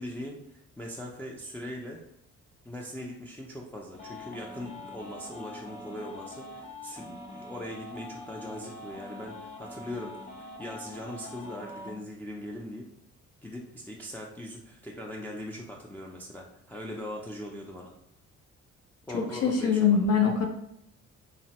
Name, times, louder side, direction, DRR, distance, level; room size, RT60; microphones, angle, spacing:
voice 1, 0.0-2.0 2.6-10.2 10.6-12.9 13.4-17.9 19.1-20.1, left 1 dB, 5° left, -2 dB, 0.3 m, -40 dB
sound 1, 3.9-11.9, left 2 dB, 20° left, 0.8 m, -44 dB
voice 2, 19.1-20.5, left 6 dB, 55° left, 3 dB, 0.6 m, -23 dB
3.0 x 2.0 x 2.8 m, 0.76 s
cardioid pair, 90°, 30 cm